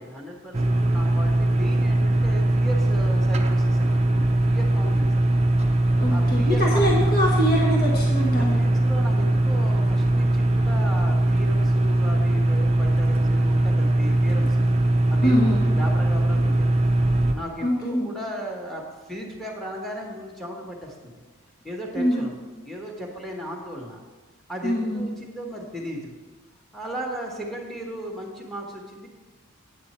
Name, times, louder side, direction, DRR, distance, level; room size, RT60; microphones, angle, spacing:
voice 1, 0.0-5.4 6.1-6.9 8.3-14.7 15.1-16.8 17.3-18.8 19.1-21.1 21.6-22.3 22.6-24.0 24.5-26.1 26.7-29.1, equal, ahead, 0 dB, 1.4 m, -36 dB
sound 1, 0.5-17.3, right 1 dB, 30° right, 0.6 m, -21 dB
voice 2, 6.0-8.5 15.2-15.6 17.6-18.1 22.0-22.3 24.6-25.1, equal, 45° left, -3 dB, 1.3 m, -24 dB
9.1 x 8.1 x 4.3 m, 1.3 s
head